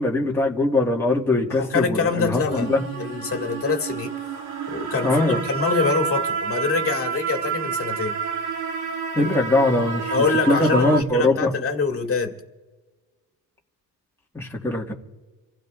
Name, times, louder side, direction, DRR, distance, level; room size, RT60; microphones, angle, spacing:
voice 1, 0.0-2.8 5.0-5.4 9.1-10.2 10.5-11.5 14.3-14.9, left 2 dB, 5° left, 1.8 m, -21 dB
voice 2, 1.5-2.7 3.0-4.1 4.7-8.2 10.1-12.3, left 5 dB, 35° left, 2.1 m, -25 dB
sound 1, 2.5-11.0, right 6 dB, 70° right, 2.9 m, -29 dB
28.0 x 16.0 x 2.5 m
cardioid pair, 120°, 39 cm